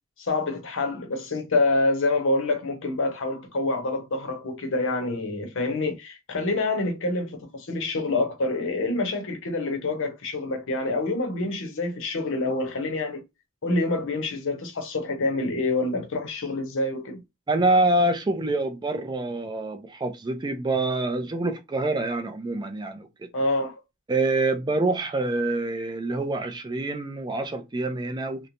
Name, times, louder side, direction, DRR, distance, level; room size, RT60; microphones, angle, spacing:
voice 1, 0.2-13.2 13.6-17.2 23.3-23.8, left 2 dB, 60° left, 0.7 m, -27 dB
voice 2, 17.5-23.3 24.1-28.5, right 2 dB, 20° right, 0.4 m, -26 dB
2.9 x 2.1 x 2.5 m
head